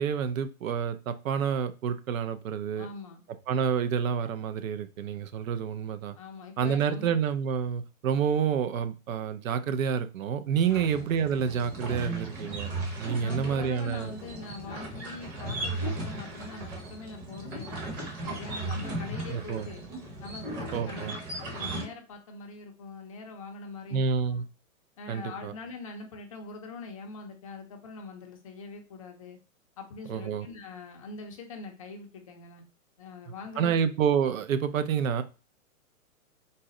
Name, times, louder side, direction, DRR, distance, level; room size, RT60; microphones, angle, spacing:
voice 1, 0.0-2.9 3.5-6.2 6.6-14.1 19.3-19.7 20.7-21.2 23.9-24.4 25.1-25.5 30.1-30.5 33.6-35.2, right 7 dB, 65° right, 11 dB, 0.6 m, -28 dB
voice 2, 2.8-3.2 6.2-7.2 10.7-11.0 13.2-17.9 18.2-19.9 20.2-24.4 25.0-29.4 29.8-32.6 33.0-33.9, left 4 dB, 25° left, 3 dB, 0.4 m, -43 dB
sound 1, 10.6-21.9, right 2 dB, 30° right, 1.1 m, -36 dB
4.0 x 2.1 x 3.7 m, 0.33 s
hypercardioid pair, 150°, 43 cm